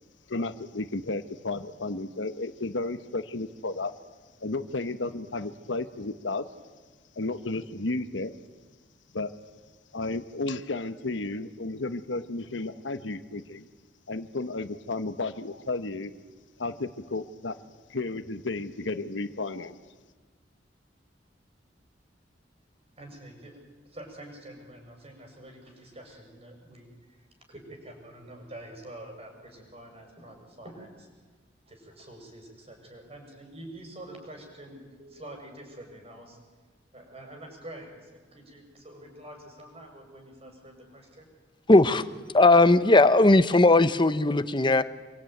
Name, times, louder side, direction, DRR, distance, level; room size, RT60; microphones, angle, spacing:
voice 1, 0.3-4.0 4.4-6.5 7.1-8.3 9.1-9.3 9.9-13.7 14.1-16.1 16.6-17.6 17.9-19.7, left 2 dB, 90° left, 9 dB, 1.1 m, -33 dB
voice 2, 23.0-31.1 31.7-36.4 36.9-41.3, right 1 dB, 35° right, 4 dB, 6.6 m, -46 dB
voice 3, 41.7-42.0 42.3-44.8, left 2 dB, 25° left, 12 dB, 1.0 m, -18 dB
27.0 x 23.0 x 9.2 m, 1.4 s
head